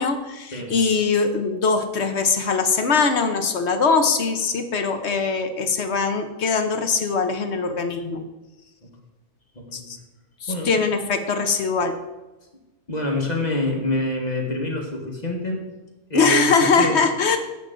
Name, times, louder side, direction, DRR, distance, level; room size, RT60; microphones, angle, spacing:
voice 1, 0.0-8.2 9.7-10.0 10.4-11.9 16.1-17.4, left 4 dB, 55° left, 7 dB, 1.1 m, -21 dB
voice 2, 9.6-9.9 10.5-10.8 12.9-15.7 16.1-17.0, left 1 dB, 30° left, 1 dB, 1.8 m, -26 dB
11.0 x 8.3 x 3.9 m, 1.1 s
omnidirectional pair, 1.4 m